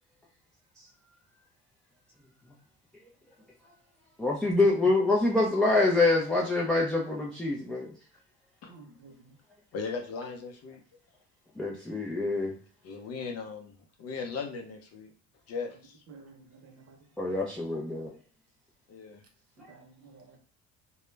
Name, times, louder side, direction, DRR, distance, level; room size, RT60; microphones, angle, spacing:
voice 1, 4.2-7.9 11.6-12.5 17.2-18.1, left 2 dB, ahead, -4 dB, 0.3 m, -25 dB
voice 2, 8.7-9.1 16.1-17.0 19.7-20.4, right 4 dB, 50° right, 3 dB, 0.8 m, -52 dB
voice 3, 9.7-10.8 12.8-13.7 14.0-15.1 15.5-15.9 18.9-19.2, left 5 dB, 50° left, 3 dB, 0.6 m, -37 dB
2.2 x 2.0 x 3.1 m, 0.43 s
cardioid pair, 120°, 31 cm